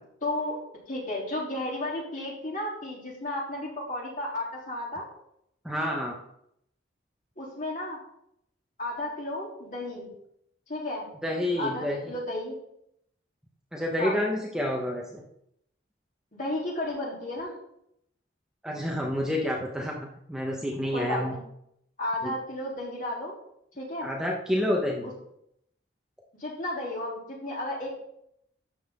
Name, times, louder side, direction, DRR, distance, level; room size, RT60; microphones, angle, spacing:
voice 1, 0.2-0.6 0.9-5.1 7.4-8.0 8.8-10.1 10.7-11.1 11.6-12.6 14.0-14.2 16.3-17.5 20.9-21.4 22.0-23.3 23.8-24.1 25.0-25.1 26.4-28.0, left 1 dB, 45° left, -3 dB, 3.6 m, -33 dB
voice 2, 5.6-6.1 11.2-12.0 13.7-15.2 18.6-21.3 22.2-22.3 24.0-25.1, left 1 dB, 5° right, -1 dB, 1.2 m, -29 dB
12.5 x 7.8 x 3.9 m, 0.74 s
head